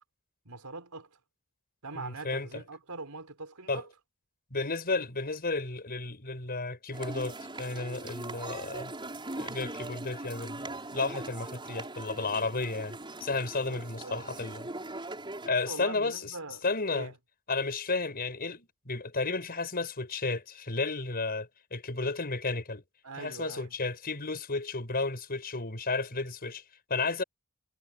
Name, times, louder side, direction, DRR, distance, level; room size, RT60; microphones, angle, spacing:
voice 1, 0.4-1.2 1.8-3.9 13.6-14.3 15.4-16.6 16.9-17.1 23.0-23.7, right 3 dB, 85° right, 4.2 m, -43 dB
voice 2, 1.9-2.6 3.7-3.8 4.5-8.9 9.4-14.7 15.5-16.3 16.6-17.1 17.5-22.8 23.2-26.6 26.9-27.2, left 3 dB, 45° left, 5.6 m, -33 dB
sound 1, 6.9-15.5, right 2 dB, 20° right, 5.6 m, -41 dB
head